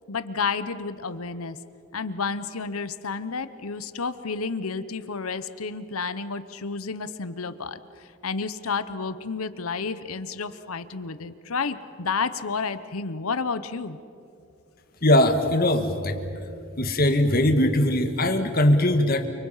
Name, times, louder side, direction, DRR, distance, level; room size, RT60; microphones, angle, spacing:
voice 1, 0.1-1.6 1.9-7.8 8.2-14.0, left 4 dB, 85° left, 13 dB, 1.0 m, -31 dB
voice 2, 15.0-16.2 16.8-19.3, left 1 dB, 45° left, 7 dB, 1.7 m, -20 dB
29.0 x 24.5 x 5.7 m, 2.8 s
head